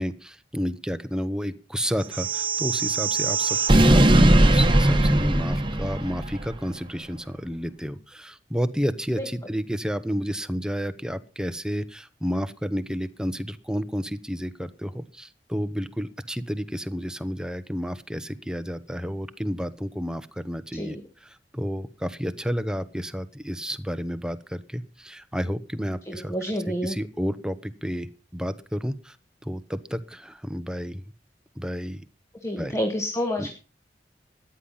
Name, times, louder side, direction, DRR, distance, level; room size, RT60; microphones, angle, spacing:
voice 1, 0.0-21.0 21.2-26.3 26.8-29.2 29.4-31.0 31.6-32.0 32.6-32.8 33.4-33.5, equal, 5° right, 12 dB, 0.9 m, -31 dB
sound 1, 2.1-6.4, right 1 dB, 30° right, 1.3 m, -19 dB
voice 2, 26.1-27.0 32.4-33.5, equal, 15° left, 4 dB, 1.7 m, -28 dB
14.0 x 10.0 x 5.7 m, 0.34 s
head